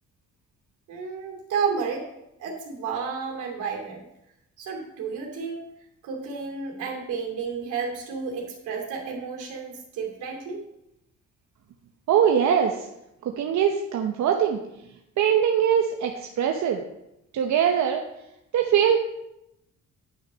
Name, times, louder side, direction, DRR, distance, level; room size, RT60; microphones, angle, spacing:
voice 1, 0.9-2.1 2.4-4.1 4.6-5.6 6.0-10.6, right 5 dB, 90° right, -1 dB, 2.9 m, -31 dB
voice 2, 12.1-12.9 13.2-14.6 15.2-16.8 17.3-18.0 18.5-19.0, right 8 dB, 70° right, 3 dB, 0.9 m, -22 dB
9.7 x 6.1 x 5.5 m, 0.85 s
cardioid pair, 90°, 30 cm